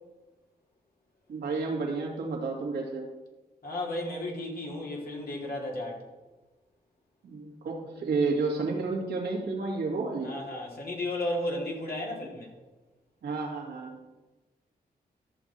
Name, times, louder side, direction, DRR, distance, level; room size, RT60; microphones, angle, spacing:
voice 1, 1.3-3.1 7.2-10.3 13.2-14.0, right 3 dB, 90° right, -2 dB, 2.2 m, -31 dB
voice 2, 3.6-6.0 10.2-12.5, left 1 dB, 65° left, -2 dB, 2.8 m, -34 dB
13.5 x 6.3 x 4.3 m, 1.2 s
cardioid pair, 50°, 17 cm